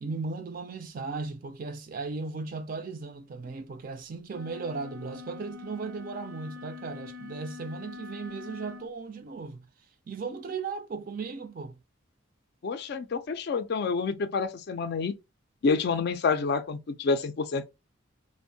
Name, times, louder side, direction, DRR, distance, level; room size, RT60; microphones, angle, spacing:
voice 1, 0.0-9.7 10.1-11.8, right 4 dB, 45° right, 0.4 m, -36 dB
sound 1, 4.3-8.9, left 5 dB, 90° right, 0.5 m, -44 dB
voice 2, 12.6-15.2 15.6-17.7, left 4 dB, 50° left, 0.3 m, -28 dB
2.5 x 2.1 x 2.6 m
head